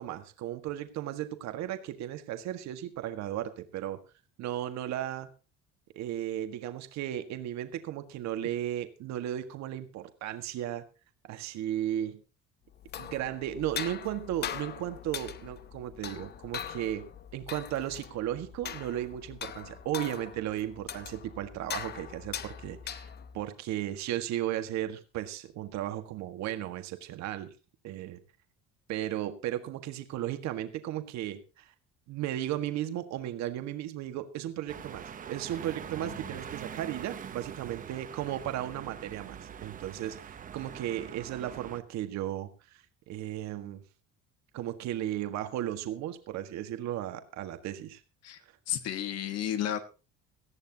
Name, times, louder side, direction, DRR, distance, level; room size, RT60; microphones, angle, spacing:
voice 1, 0.0-4.0 4.4-5.3 5.9-10.8 11.2-12.2 13.0-17.1 17.3-23.1 23.3-27.5 27.8-28.2 28.9-31.7 32.1-43.8 44.5-48.0, right 12 dB, 60° right, 8 dB, 1.7 m, -35 dB
sound 1, 12.7-23.4, left 9 dB, 30° left, 0.8 m, -41 dB
sound 2, 34.7-41.8, right 8 dB, 25° right, 0.9 m, -43 dB
voice 2, 48.7-49.8, left 10 dB, 50° left, 10 dB, 1.5 m, -33 dB
18.5 x 14.0 x 2.9 m, 0.32 s
cardioid pair, 175°, 31 cm